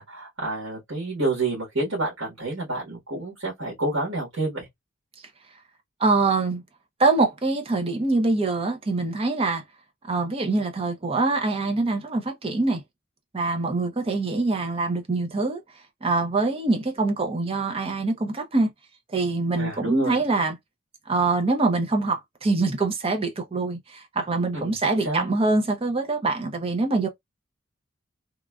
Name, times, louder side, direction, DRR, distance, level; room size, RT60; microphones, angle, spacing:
voice 1, 0.0-4.7 19.6-20.2 24.5-24.8 25.0-25.3, right 2 dB, 80° right, 1.5 m, -29 dB
voice 2, 6.0-6.6 7.0-9.6 10.1-12.8 13.3-15.6 16.0-18.7 19.1-20.6 21.1-27.1, right 3 dB, 30° right, 0.6 m, -24 dB
3.0 x 2.4 x 2.2 m
head